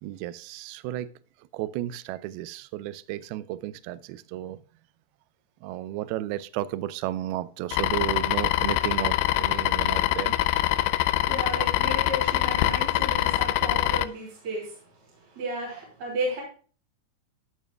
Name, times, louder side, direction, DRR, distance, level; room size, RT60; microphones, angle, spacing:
voice 1, 0.0-1.1 1.5-4.6 5.6-10.4, right 14 dB, 90° right, 2.2 m, -33 dB
sound 1, 7.7-14.0, left 16 dB, 85° left, 2.8 m, -24 dB
voice 2, 11.0-16.4, right 1 dB, 40° right, 4.1 m, -34 dB
13.0 x 8.9 x 2.3 m
omnidirectional pair, 5.1 m